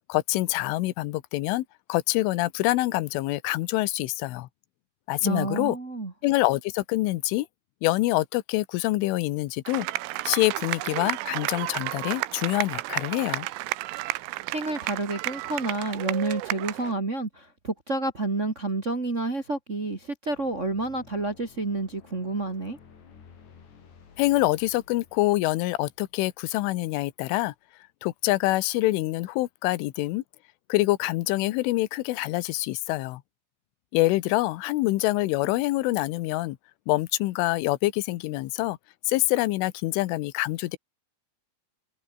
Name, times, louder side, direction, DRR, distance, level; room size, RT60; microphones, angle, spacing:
voice 1, 0.1-4.5 5.1-5.8 6.2-7.5 7.8-9.9 10.3-13.5 24.2-27.5 28.0-30.2 30.7-33.2 33.9-36.6 36.9-38.8 39.1-40.8, left 18 dB, 80° left, 3.5 m, -26 dB
voice 2, 5.2-6.1 14.5-22.8, right 2 dB, 55° right, 0.7 m, -29 dB
sound 1, 9.7-16.9, right 19 dB, 90° right, 3.4 m, -32 dB
sound 2, 20.3-26.9, left 6 dB, 60° left, 6.7 m, -54 dB
omnidirectional pair, 5.8 m